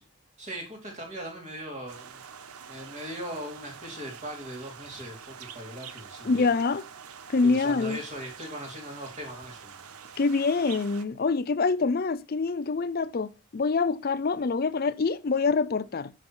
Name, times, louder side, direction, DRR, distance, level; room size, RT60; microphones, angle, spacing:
voice 1, 0.4-2.2 2.7-6.5 7.4-9.7, equal, 30° right, 2.8 m, -39 dB
sound 1, 1.9-11.0, right 7 dB, 85° right, 0.8 m, -46 dB
voice 2, 6.2-6.8 7.3-8.0 10.2-16.1, left 4 dB, 40° left, 0.4 m, -25 dB
8.7 x 6.0 x 4.3 m
head